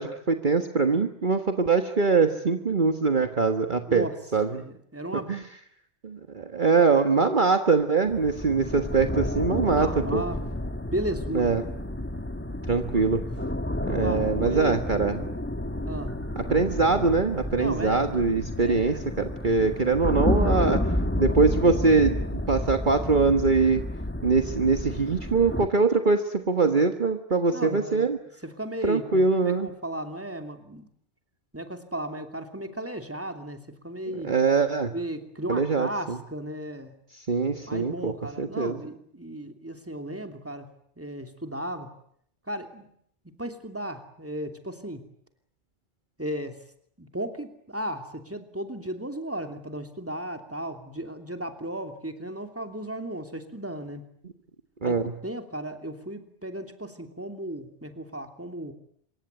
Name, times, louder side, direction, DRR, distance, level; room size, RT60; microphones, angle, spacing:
voice 1, 0.0-4.6 5.3-5.4 6.0-10.2 11.3-11.6 12.7-13.3 13.8-15.2 16.4-23.8 24.2-28.2 28.8-29.7 34.2-34.9 35.5-36.2 37.1-38.1 38.4-38.8 54.8-55.1, right 4 dB, 45° right, 7 dB, 1.6 m, -23 dB
voice 2, 4.5-5.3 9.7-10.4 10.9-11.7 12.9-13.2 13.9-14.8 15.8-16.2 17.6-18.1 18.6-19.1 27.5-28.0 28.4-30.9 31.5-34.3 34.9-36.9 37.7-40.7 41.0-41.9 42.5-42.9 43.2-45.1 46.2-46.6 47.0-54.1 54.8-58.7, right 1 dB, 10° right, 6 dB, 3.0 m, -35 dB
sound 1, 8.1-25.7, left 1 dB, 10° left, 1.3 m, -30 dB
26.0 x 23.5 x 9.5 m, 0.68 s
omnidirectional pair, 1.2 m